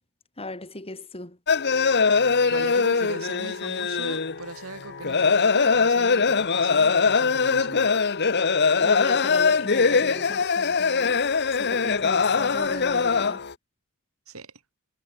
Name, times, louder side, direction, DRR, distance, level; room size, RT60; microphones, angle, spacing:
voice 1, 0.4-1.4 8.8-11.2 11.5-13.4, left 2 dB, 25° left, 5.0 m, -37 dB
sound 1, 1.5-13.5, left 5 dB, 50° left, 1.3 m, -22 dB
voice 2, 2.1-7.9 14.3-14.5, right 2 dB, 65° right, 7.0 m, -40 dB
head